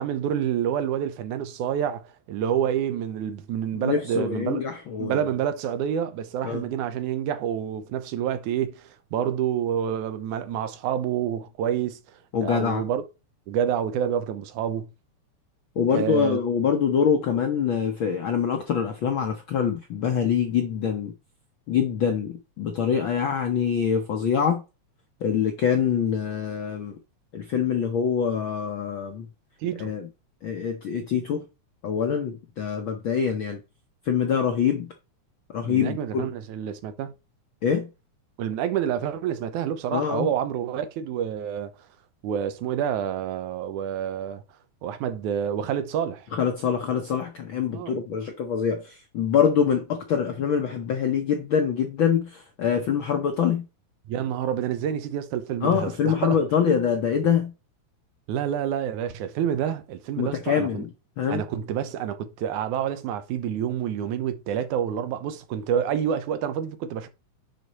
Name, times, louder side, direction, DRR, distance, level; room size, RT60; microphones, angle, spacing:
voice 1, 0.0-4.6 5.0-12.0 12.4-13.0 13.5-14.9 15.9-16.4 29.6-30.0 35.6-37.1 38.4-41.7 42.2-44.4 44.8-46.3 47.7-48.0 54.1-56.4 58.3-60.8 61.3-67.1, right 9 dB, 85° right, 2.3 m, -28 dB
voice 2, 3.7-5.3 6.4-6.7 12.3-12.8 15.8-21.1 21.7-24.6 25.2-27.0 27.3-29.3 29.8-30.1 30.4-31.4 31.8-33.6 34.1-34.9 35.5-36.3 37.6-37.9 39.9-40.3 46.3-53.6 55.6-57.5 60.2-60.9 61.2-61.4, left 7 dB, 70° left, 1.1 m, -25 dB
10.0 x 4.3 x 4.1 m
omnidirectional pair, 3.5 m